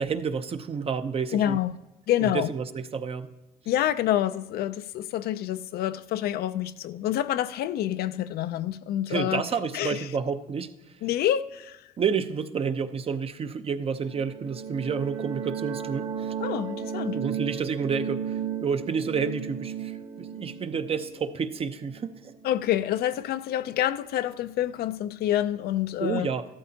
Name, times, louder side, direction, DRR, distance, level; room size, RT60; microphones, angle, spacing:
voice 1, 0.0-1.6 2.2-3.3 9.1-10.7 12.0-16.3 17.1-22.3 26.0-26.4, right 6 dB, 35° right, 0.7 m, -30 dB
voice 2, 1.3-1.7 2.1-2.5 3.7-9.4 9.7-10.1 11.0-11.8 16.4-17.2 22.4-26.3, left 12 dB, 70° left, 0.5 m, -27 dB
sound 1, 14.0-22.6, right 7 dB, 50° right, 1.9 m, -34 dB
14.0 x 12.5 x 2.8 m
cardioid pair, 110°, 17 cm